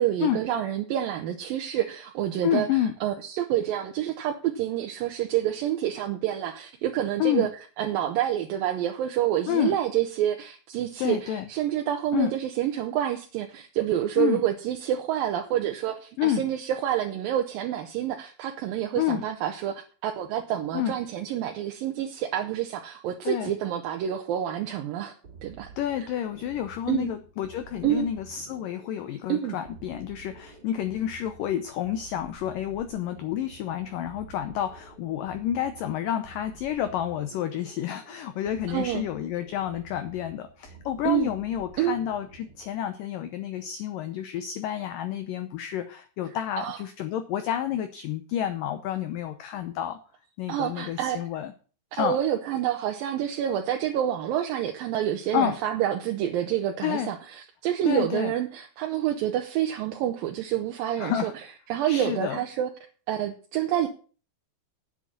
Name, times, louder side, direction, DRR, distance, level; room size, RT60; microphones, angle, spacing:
voice 1, 0.0-2.7 3.0-7.5 7.8-25.1 25.4-25.7 26.9-27.1 27.8-28.1 29.3-29.6 38.7-39.0 41.0-41.3 41.8-42.0 46.6-46.8 50.5-51.2 51.9-61.3 61.7-62.7 63.1-63.9, right 11 dB, 75° right, 4 dB, 2.3 m, -28 dB
voice 2, 2.4-3.0 7.2-7.5 9.5-9.8 11.0-11.4 12.1-12.3 14.2-14.4 16.2-16.5 19.0-19.3 20.7-20.9 23.3-23.5 25.8-50.0 50.4-51.5 51.9-52.2 55.3-55.6 56.8-57.1 57.8-58.3 61.0-61.3 61.9-62.4, left 10 dB, 90° left, 10 dB, 1.9 m, -29 dB
sound 1, 25.2-42.8, right 4 dB, 30° right, 2.1 m, -50 dB
8.8 x 8.2 x 7.3 m, 0.39 s
omnidirectional pair, 5.0 m